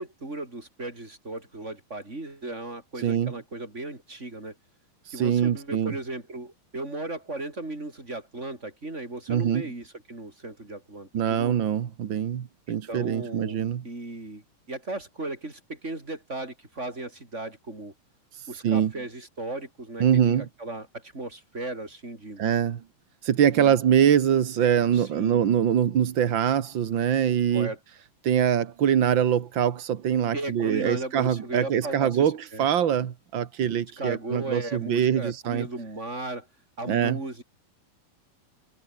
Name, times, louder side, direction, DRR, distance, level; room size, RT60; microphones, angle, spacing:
voice 1, 0.0-4.6 5.1-11.5 12.7-14.4 14.7-17.9 18.5-22.4 23.5-23.7 24.9-25.5 27.5-27.8 30.3-32.7 34.0-36.5 36.8-37.4, right 2 dB, 15° right, 5.7 m, -36 dB
voice 2, 3.0-3.3 5.1-5.9 9.3-9.6 11.1-13.8 18.6-18.9 20.0-20.5 22.4-22.8 23.2-27.7 28.2-35.7 36.9-37.2, right 9 dB, 75° right, 1.1 m, -23 dB
omnidirectional pair, 4.3 m